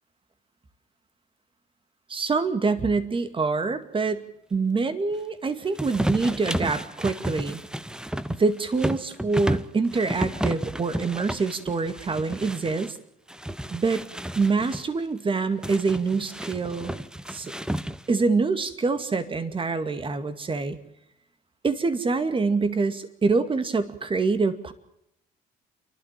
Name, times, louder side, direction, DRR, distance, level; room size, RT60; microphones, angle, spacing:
voice 1, 2.1-4.2 4.5-7.6 8.3-13.0 13.7-14.1 14.4-16.9 17.3-17.5 18.1-20.8 21.6-24.7, right 4 dB, 30° right, 11 dB, 2.3 m, -25 dB
sound 1, 5.8-12.9 13.3-14.8 15.6-18.2, right 1 dB, 5° right, 0.9 m, -31 dB
29.5 x 12.5 x 7.6 m, 0.79 s
cardioid pair, 90°, 17 cm